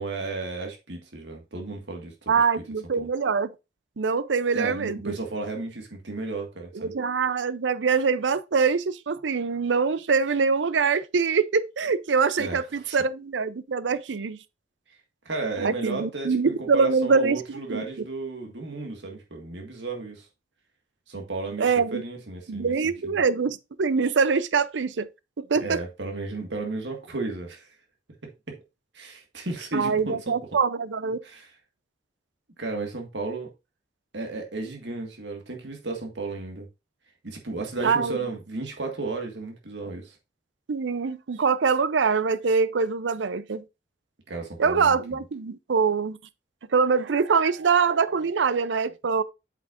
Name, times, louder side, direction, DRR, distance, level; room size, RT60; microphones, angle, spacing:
voice 1, 0.0-2.4 3.0-3.1 4.5-6.9 12.4-13.0 15.3-20.3 21.1-23.2 25.6-27.7 28.5-28.6 28.9-30.4 31.2-31.5 32.6-33.5 34.1-36.7 37.2-40.1 44.3-45.2, right 3 dB, 70° right, 1.8 m, -34 dB
voice 2, 2.3-3.5 4.0-5.1 6.7-14.4 15.6-17.8 21.6-22.0 22.5-25.1 25.4-25.8 29.7-31.2 37.8-38.2 40.7-43.6 44.6-46.2 46.7-49.2, right 5 dB, 85° right, 0.6 m, -24 dB
8.3 x 5.9 x 2.5 m
head